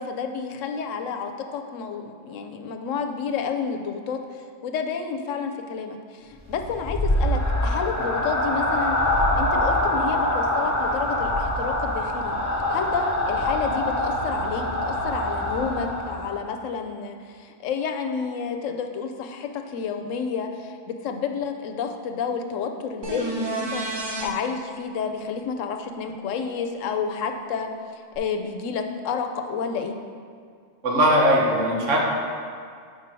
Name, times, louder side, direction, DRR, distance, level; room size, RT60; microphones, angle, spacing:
voice 1, 0.0-9.0 9.4-12.3 12.7-30.0, left 6 dB, 85° left, 5 dB, 1.0 m, -30 dB
sound 1, 6.4-16.4, left 1 dB, 20° left, 0.5 m, -24 dB
sound 2, 23.0-24.3 28.1-28.2, right 2 dB, 25° right, 0.6 m, -29 dB
voice 2, 30.8-32.0, equal, 75° right, -2 dB, 1.5 m, -19 dB
5.2 x 4.5 x 6.1 m, 2.1 s
omnidirectional pair, 1.3 m